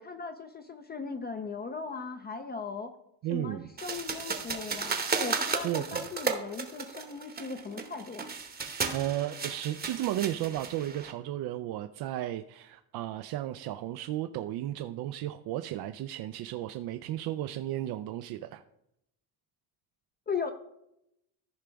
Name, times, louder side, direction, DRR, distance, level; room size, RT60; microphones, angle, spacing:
voice 1, 0.0-2.9 3.3-8.3 20.3-20.5, left 5 dB, 25° left, 6 dB, 0.5 m, -38 dB
voice 2, 3.2-3.7 5.4-6.1 8.9-18.6, right 13 dB, 70° right, 8 dB, 0.5 m, -34 dB
sound 1, 3.8-11.1, right 5 dB, 25° right, 0.9 m, -34 dB
14.5 x 5.0 x 3.4 m, 0.80 s
cardioid pair, 140°, 40 cm